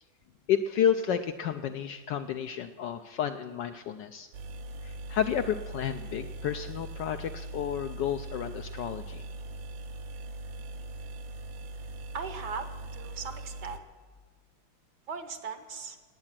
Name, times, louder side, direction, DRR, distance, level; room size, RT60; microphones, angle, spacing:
voice 1, 0.5-4.3 4.8-9.2, left 8 dB, 75° left, 8 dB, 1.0 m, -31 dB
sound 1, 4.3-13.8, right 2 dB, 80° right, 1.6 m, -41 dB
voice 2, 12.1-13.8 15.1-16.0, right 5 dB, 60° right, 10 dB, 1.2 m, -38 dB
17.5 x 9.8 x 7.4 m, 1.5 s
omnidirectional pair, 2.4 m